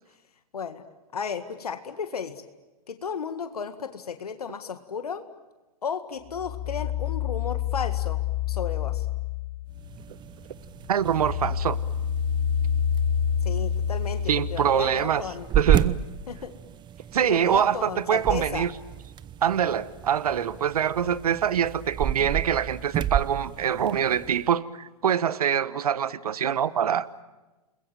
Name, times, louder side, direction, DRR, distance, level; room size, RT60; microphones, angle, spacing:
voice 1, 0.5-0.8 1.1-2.4 2.9-5.2 5.8-9.1 13.4-15.5 16.3-16.5 17.3-18.7, left 6 dB, 85° left, 1.9 m, -34 dB
sound 1, 6.3-10.2 10.6-15.1, left 8 dB, 40° left, 2.4 m, -28 dB
sound 2, 9.7-24.5, right 10 dB, 25° right, 0.9 m, -32 dB
voice 2, 10.9-11.8 14.3-15.2 15.5-16.0 17.1-18.7 19.4-27.1, right 9 dB, 80° right, 1.1 m, -24 dB
29.5 x 21.5 x 9.0 m
hypercardioid pair, 115°, 19 cm